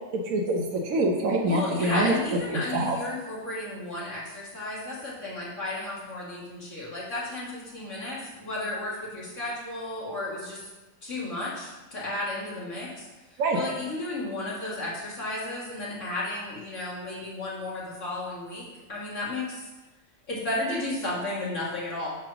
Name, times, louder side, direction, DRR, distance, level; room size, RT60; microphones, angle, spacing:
voice 1, 0.1-2.1 2.5-3.0 13.4-13.6, right 2 dB, 90° right, 1 dB, 1.3 m, -25 dB
voice 2, 1.4-10.7 11.0-19.7 20.3-22.1, left 2 dB, 65° left, -7 dB, 2.4 m, -33 dB
7.6 x 3.2 x 6.0 m, 1.2 s
omnidirectional pair, 1.4 m